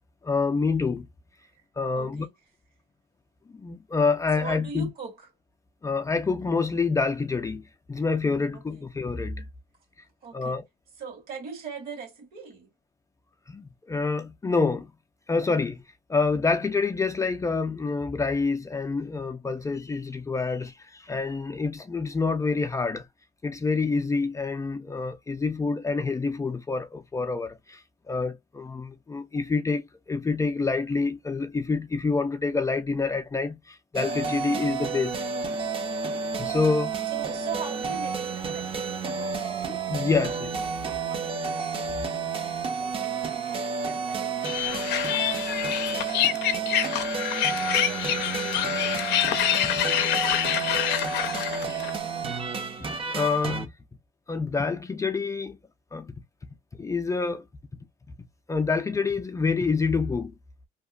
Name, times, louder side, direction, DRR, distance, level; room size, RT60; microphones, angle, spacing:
voice 1, 0.2-1.1 1.8-2.3 3.5-4.9 5.8-7.6 7.9-9.4 10.3-10.6 13.5-14.9 15.3-15.8 16.1-23.1 23.4-27.8 28.1-35.1 36.4-36.9 39.9-40.5 51.7-51.8 52.6-53.7 54.3-55.6 55.9-56.1 56.7-57.4 58.5-60.3, left 4 dB, 20° left, 0.4 m, -27 dB
voice 2, 1.9-2.3 4.3-5.3 8.5-8.9 10.2-10.6 11.0-12.7 37.1-51.9, right 6 dB, 60° right, 1.6 m, -42 dB
sound 1, 34.0-53.7, right 5 dB, 35° right, 0.7 m, -31 dB
sound 2, 44.4-51.9, left 11 dB, 85° left, 0.5 m, -26 dB
2.8 x 2.4 x 2.3 m
cardioid pair, 110°, 17 cm